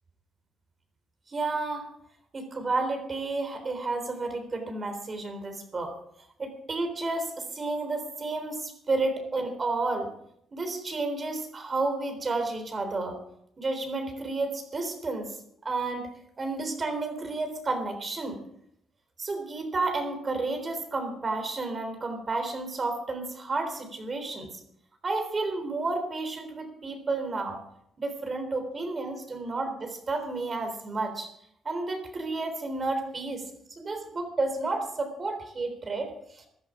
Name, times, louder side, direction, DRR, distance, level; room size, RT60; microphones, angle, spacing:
voice 1, 1.3-1.9 2.3-5.9 6.4-10.1 10.5-13.2 13.6-15.4 15.6-16.1 16.4-18.4 19.2-24.5 25.0-27.6 28.0-31.3 31.6-33.4 33.7-36.5, right 3 dB, 35° right, 6 dB, 3.5 m, -31 dB
14.5 x 11.0 x 5.0 m, 0.72 s
cardioid pair, 90°, 0 cm